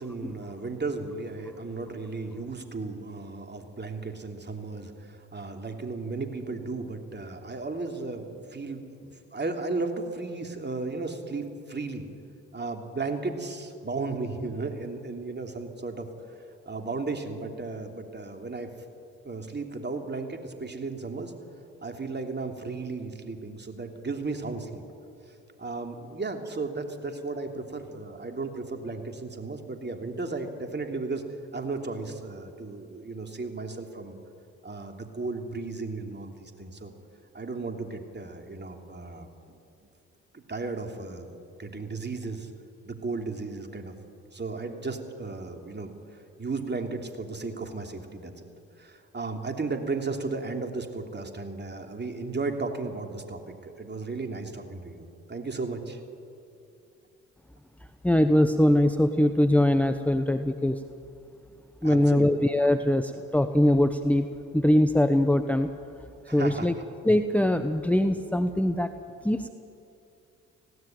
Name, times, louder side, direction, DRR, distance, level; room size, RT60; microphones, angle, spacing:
voice 1, 0.0-12.1 12.5-16.1 16.6-18.7 19.2-21.3 21.8-24.8 25.6-31.2 31.5-34.2 34.6-36.9 37.3-39.6 40.3-42.5 42.8-44.0 44.3-45.9 46.4-48.4 48.8-56.0 61.8-62.3 66.2-66.7, right 3 dB, 30° right, 4 dB, 3.1 m, -35 dB
voice 2, 58.0-60.8 61.8-64.3 64.5-65.7 66.3-66.7 67.0-68.9 69.2-69.5, left 1 dB, 5° left, 9 dB, 1.1 m, -22 dB
19.0 x 17.0 x 9.2 m, 2.6 s
hypercardioid pair, 45°, 36 cm